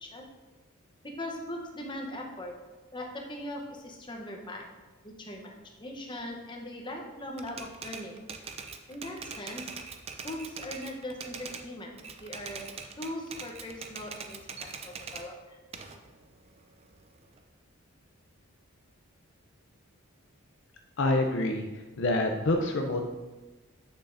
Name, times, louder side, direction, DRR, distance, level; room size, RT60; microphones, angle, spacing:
voice 1, 1.0-2.5 2.9-4.7 5.0-8.1 8.9-9.7 10.2-11.9 12.2-12.7 13.0-15.6, left 1 dB, 20° left, 1 dB, 0.9 m, -40 dB
Typewriter, 7.4-11.7 12.0-15.3 15.7-17.4, right 5 dB, 30° right, 0.4 m, -42 dB
voice 2, 21.0-21.6 22.0-23.1, left 2 dB, 55° left, 3 dB, 0.5 m, -26 dB
8.2 x 6.7 x 2.6 m, 1.2 s
head